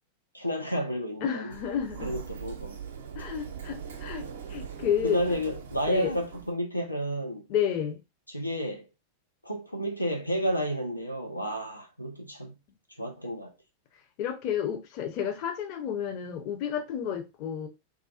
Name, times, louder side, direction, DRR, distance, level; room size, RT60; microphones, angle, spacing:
voice 1, 0.3-1.5 2.0-2.8 5.0-7.5 8.3-8.9 9.4-12.5 13.0-13.5, equal, 85° left, 0.4 m, -31 dB
voice 2, 1.2-2.2 3.1-5.4 5.9-6.1 7.5-8.0 14.2-17.7, left 8 dB, 40° left, 0.6 m, -31 dB
Sliding door, 1.5-6.5, right 7 dB, 60° right, 0.4 m, -41 dB
2.5 x 2.3 x 2.4 m
figure-of-eight pair, 90°, 0 cm